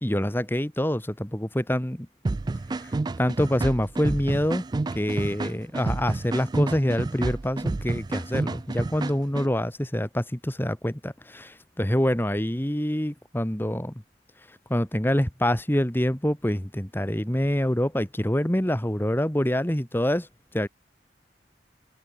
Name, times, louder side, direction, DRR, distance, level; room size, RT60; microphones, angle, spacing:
voice 1, 0.0-2.1 2.8-2.9 3.2-4.6 4.9-14.0 14.7-20.3 20.5-20.7, equal, 10° left, 1.6 m, -26 dB
sound 1, 2.2-9.5, right 2 dB, 25° right, 0.3 m, -30 dB
head